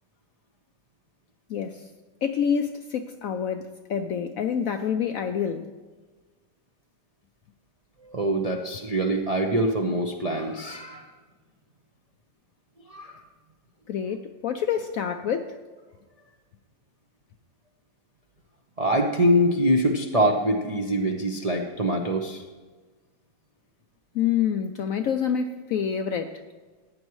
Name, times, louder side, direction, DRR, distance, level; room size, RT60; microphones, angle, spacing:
voice 1, 1.5-1.9 2.2-5.7 13.9-15.5 24.1-26.3, left 8 dB, 70° left, 7 dB, 0.8 m, -27 dB
voice 2, 8.0-11.1 12.9-13.1 18.8-22.4, equal, 45° right, 1 dB, 0.4 m, -24 dB
15.0 x 9.5 x 3.1 m, 1.3 s
omnidirectional pair, 1.9 m